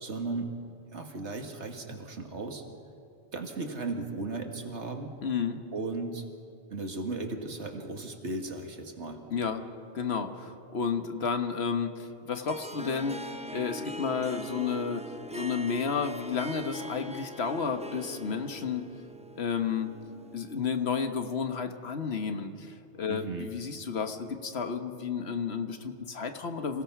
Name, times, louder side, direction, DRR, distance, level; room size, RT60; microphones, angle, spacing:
voice 1, 0.0-0.5 0.9-2.6 3.3-5.1 5.7-6.2 6.7-9.2 23.1-23.5, right 3 dB, 90° right, 4 dB, 2.1 m, -36 dB
voice 2, 5.2-5.6 9.3-9.6 9.9-15.1 15.3-18.8 19.4-19.9 20.3-26.8, left 6 dB, 70° left, 7 dB, 1.5 m, -32 dB
Harp, 12.5-20.9, right 1 dB, 10° right, 0.5 m, -42 dB
26.0 x 17.0 x 6.0 m, 2.9 s
omnidirectional pair, 1.1 m